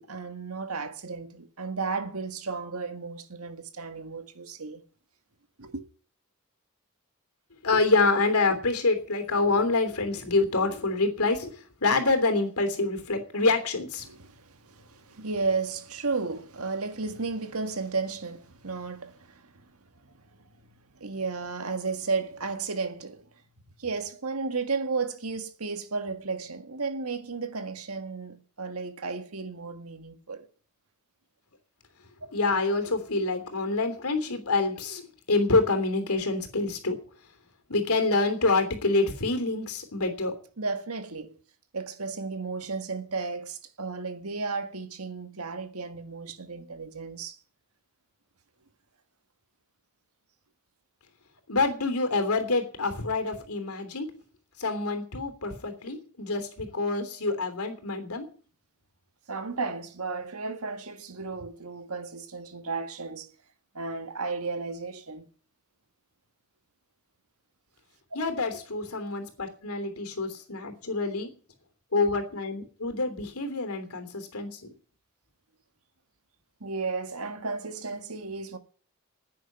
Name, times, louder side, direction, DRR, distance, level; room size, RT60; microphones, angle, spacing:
voice 1, 0.0-4.8 5.6-5.8 14.0-19.5 21.0-23.2 23.8-30.5 40.6-41.4 41.7-47.4 59.3-63.3 63.7-65.3 76.6-78.6, right 4 dB, 85° right, 1.7 m, -33 dB
voice 2, 7.6-11.5 11.8-14.0 32.3-35.0 35.3-36.9 37.7-40.3 51.5-54.1 54.6-58.3 68.1-71.3 71.9-74.5, left 3 dB, 85° left, 3.2 m, -26 dB
10.0 x 9.6 x 9.2 m
head